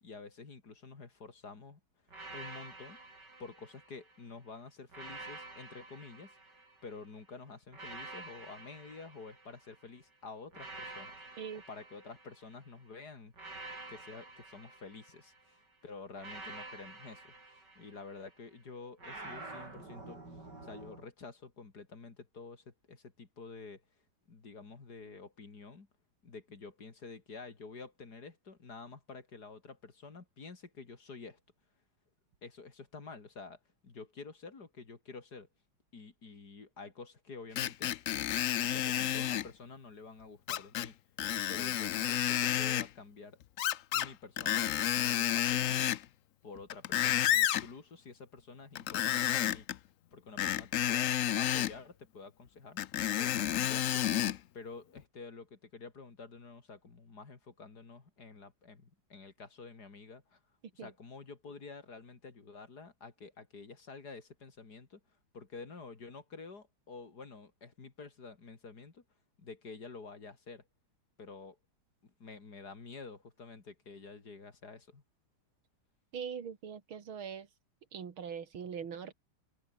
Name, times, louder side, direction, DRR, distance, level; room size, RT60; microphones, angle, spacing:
voice 1, 0.0-1.8 2.3-3.0 3.4-6.3 6.8-11.1 11.5-13.3 13.9-20.2 20.6-23.8 24.3-25.9 26.2-31.4 32.4-35.5 35.9-37.9 38.7-41.0 41.5-43.4 43.9-46.0 46.4-49.7 50.1-52.8 53.2-54.0 54.5-60.4 60.7-65.0 65.3-69.0 69.4-70.7 71.2-71.6 72.2-75.0, left 4 dB, 50° left, 3.4 m, -49 dB
sound 1, 2.1-4.3 4.9-7.1 7.7-9.9 10.5-12.7 13.3-15.5 16.2-18.3 19.0-21.0, right 2 dB, 55° right, 6.6 m, -49 dB
Screech, 37.6-39.5 40.5-40.9 41.2-42.9 43.6-44.1 44.4-46.0 46.6-47.7 48.8-49.8 50.4-51.7 52.8-54.4 55.0-55.1, left 12 dB, 80° left, 0.7 m, -30 dB
voice 2, 76.1-77.5 77.9-79.1, right 7 dB, 85° right, 2.8 m, -41 dB
open air
omnidirectional pair, 2.2 m